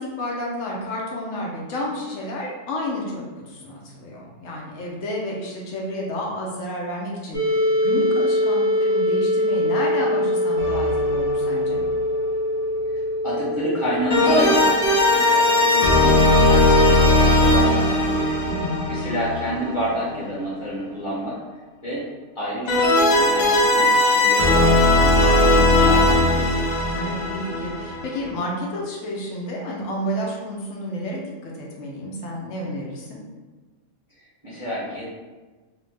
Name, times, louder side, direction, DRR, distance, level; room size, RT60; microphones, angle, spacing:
voice 1, 0.0-11.8 18.4-18.8 26.9-33.2, left 1 dB, 85° left, -2 dB, 1.0 m, -31 dB
sound 1, 7.3-19.0, left 1 dB, 15° right, 0.4 m, -24 dB
sound 2, 10.6-11.5 14.1-20.1 22.7-28.3, left 1 dB, 65° left, 0.4 m, -18 dB
voice 2, 12.9-18.3 18.9-21.3 21.8-22.0 22.3-22.8 23.1-26.5 34.4-35.0, equal, 25° left, -8 dB, 1.0 m, -29 dB
2.7 x 2.1 x 3.1 m, 1.3 s
omnidirectional pair, 1.3 m